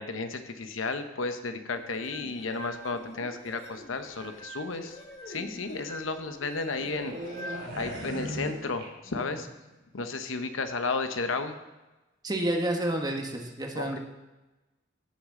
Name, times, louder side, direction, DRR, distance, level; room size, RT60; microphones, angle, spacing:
voice 1, 0.0-5.0 5.3-9.5 9.9-11.6 13.7-14.0, left 3 dB, 85° left, 8 dB, 0.9 m, -33 dB
sound 1, 1.8-8.6, equal, 35° left, 1.5 m, -45 dB
sound 2, 6.7-9.4 9.7-10.0, equal, 60° right, 3.4 m, -38 dB
voice 2, 12.2-14.0, right 1 dB, 20° right, 2 dB, 1.1 m, -29 dB
16.0 x 6.5 x 3.7 m, 1.1 s
head